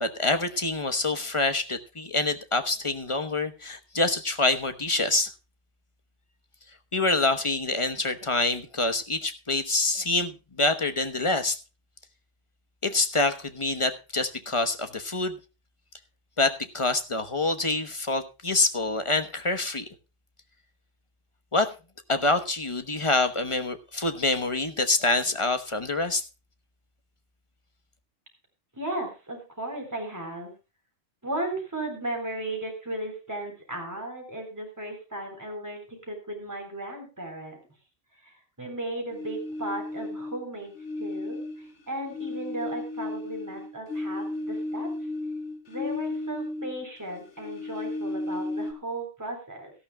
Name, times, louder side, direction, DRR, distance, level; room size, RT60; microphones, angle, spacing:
voice 1, 0.0-5.3 6.9-11.6 12.8-15.4 16.4-19.8 21.5-21.7 22.1-26.2, left 2 dB, 25° left, 8 dB, 1.1 m, -26 dB
voice 2, 28.7-30.5 31.2-37.6 38.2-40.7 41.0-44.9 45.7-49.7, right 1 dB, 15° right, 2 dB, 3.8 m, -35 dB
sound 1, 39.1-40.4 40.8-46.9 47.1-48.7, left 2 dB, 70° left, 2.6 m, -34 dB
17.5 x 13.0 x 2.2 m, 0.30 s
omnidirectional pair, 1.2 m